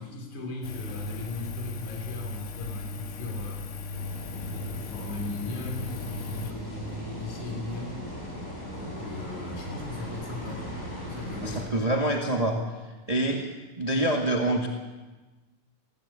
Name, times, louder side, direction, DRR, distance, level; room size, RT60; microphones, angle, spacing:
voice 1, 0.0-3.7 4.4-8.1 8.6-11.7, left 2 dB, 75° left, 0 dB, 4.7 m, -38 dB
Engine, 0.6-6.5, left 3 dB, 55° left, 2.0 m, -36 dB
sound 1, 3.9-11.7, left 1 dB, 15° left, 7.0 m, -38 dB
voice 2, 11.4-12.6 13.1-13.5 13.8-14.7, right 1 dB, 15° right, 1 dB, 1.4 m, -26 dB
18.0 x 17.0 x 8.9 m, 1.2 s
omnidirectional pair, 3.4 m